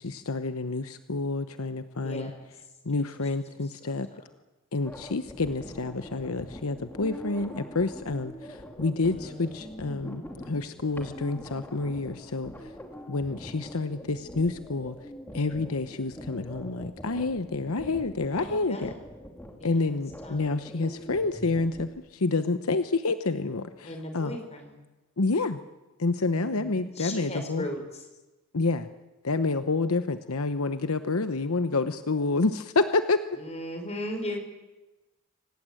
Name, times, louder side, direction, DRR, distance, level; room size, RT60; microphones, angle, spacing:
voice 1, 0.0-2.3 2.8-4.1 4.7-12.7 13.1-14.9 15.3-18.9 19.6-24.4 25.2-25.6 26.0-27.7 28.5-28.9 29.2-33.2, left 3 dB, 75° left, 10 dB, 1.0 m, -28 dB
voice 2, 2.0-2.4 2.9-3.1 3.8-3.9 9.0-9.9 18.3-18.9 19.6-20.4 23.8-24.8 26.3-28.0 33.4-34.4, left 1 dB, 30° left, 5 dB, 4.8 m, -38 dB
sound 1, 4.8-21.9, equal, 10° left, 3.0 m, -43 dB
26.0 x 18.5 x 9.0 m, 1.1 s
head